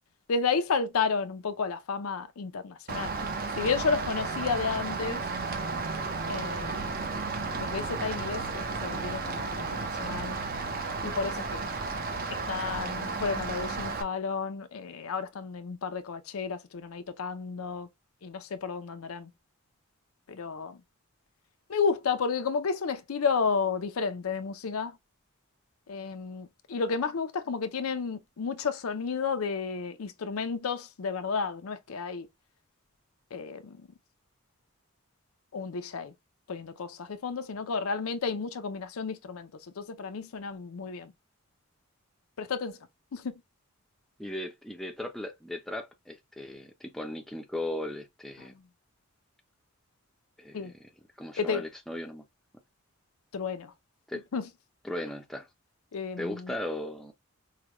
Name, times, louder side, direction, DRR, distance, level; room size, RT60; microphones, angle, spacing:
voice 1, 0.3-3.1 3.6-5.2 6.3-7.1 7.6-10.4 11.0-11.6 12.3-17.9 18.2-19.3 20.3-20.8 21.7-25.0 25.9-32.3 33.3-33.8 35.5-36.1 36.5-39.5 39.8-41.1 42.4-42.8 43.1-43.3 50.5-50.7 51.4-51.7 53.3-53.7 54.3-54.4 55.9-56.5, left 5 dB, 85° left, 0.5 m, -32 dB
Rain, 2.9-14.0, right 4 dB, 45° right, 0.6 m, -33 dB
voice 2, 44.2-48.5 50.4-50.9 51.2-52.2 54.1-54.2 54.8-55.5 56.2-57.1, left 1 dB, ahead, 0.5 m, -37 dB
4.8 x 2.2 x 2.9 m
head